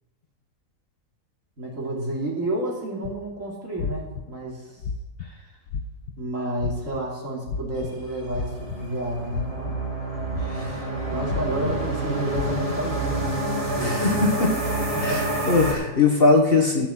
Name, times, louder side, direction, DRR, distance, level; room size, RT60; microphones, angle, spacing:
voice 1, 1.6-4.8 6.2-9.8 11.1-14.0 14.9-15.2, right 1 dB, 50° right, -3 dB, 3.2 m, -30 dB
sound 1, 3.0-3.2 3.8-4.2 4.8-5.3 5.7-6.1 6.6-7.0 7.4-7.9 8.3-9.0 9.3-9.7 10.3-10.7 11.3-11.7 12.3-12.8, left 6 dB, 90° left, 1.4 m, -31 dB
sound 2, 7.9-15.7, right 2 dB, 20° right, 3.1 m, -28 dB
voice 2, 10.5-10.8 13.8-14.5 15.0-16.9, left 3 dB, 40° left, 0 dB, 1.3 m, -21 dB
13.0 x 5.9 x 7.8 m, 1.0 s
omnidirectional pair, 1.7 m